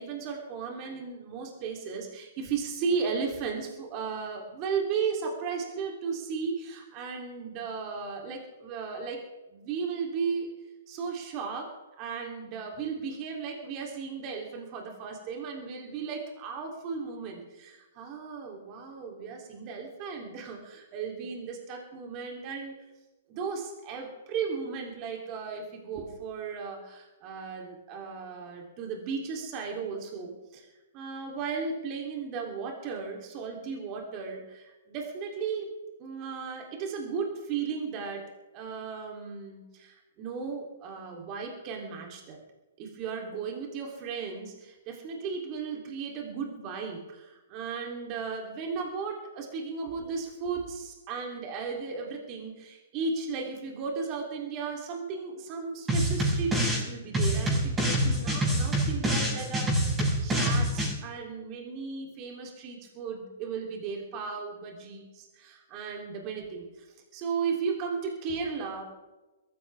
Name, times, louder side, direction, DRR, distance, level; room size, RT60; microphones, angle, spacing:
voice 1, 0.0-9.2 9.5-10.5 10.9-22.9 23.3-30.7 30.9-42.4 42.8-66.9 67.1-68.9, right 5 dB, 35° right, 1 dB, 3.5 m, -35 dB
sound 1, 55.9-56.9 57.1-60.9, right 1 dB, 15° right, 6.5 m, -26 dB
22.0 x 14.5 x 3.6 m, 1.1 s
figure-of-eight pair, 120°, 0 cm